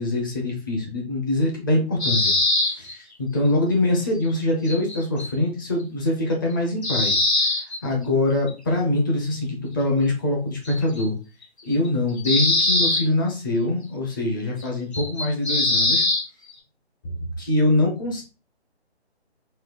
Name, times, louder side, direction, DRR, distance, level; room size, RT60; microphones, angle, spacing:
voice 1, 0.0-2.3 2.6-11.1 11.6-16.0 17.0-18.2, left 1 dB, 20° left, 0 dB, 0.8 m, -24 dB
sound 1, 2.0-2.9 4.7-5.3 6.5-6.6 6.8-7.8 8.5-8.6 10.7-11.0 11.9-12.0 12.2-13.0 14.6-14.7 14.9-16.2, left 2 dB, 80° left, 2.5 m, -21 dB
4.2 x 2.8 x 3.9 m, 0.32 s
figure-of-eight pair, 155°, 33 cm